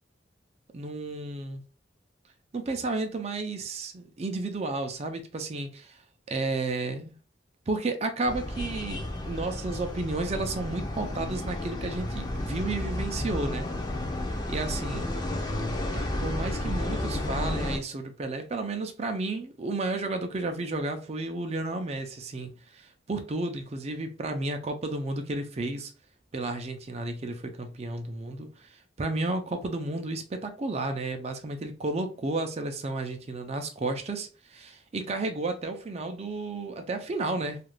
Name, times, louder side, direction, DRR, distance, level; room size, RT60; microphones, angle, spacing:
voice 1, 0.7-1.6 2.5-6.0 6.3-7.1 7.7-13.7 14.5-15.1 15.9-25.9 26.3-28.7 29.0-37.6, right 2 dB, 35° right, 0.4 m, -32 dB
sound 1, 8.3-17.8, left 1 dB, 25° left, 0.5 m, -32 dB
2.4 x 2.3 x 3.1 m
head